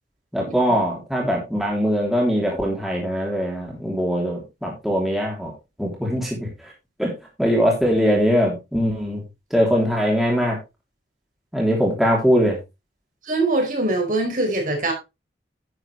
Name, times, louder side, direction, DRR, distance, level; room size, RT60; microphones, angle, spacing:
voice 1, 0.3-5.5 5.8-6.7 7.0-7.1 7.4-9.2 9.5-10.6 11.5-12.6, equal, ahead, -3 dB, 3.1 m, -21 dB
voice 2, 13.2-14.9, right 2 dB, 50° right, 2 dB, 4.4 m, -22 dB
10.5 x 8.7 x 3.2 m, 0.25 s
head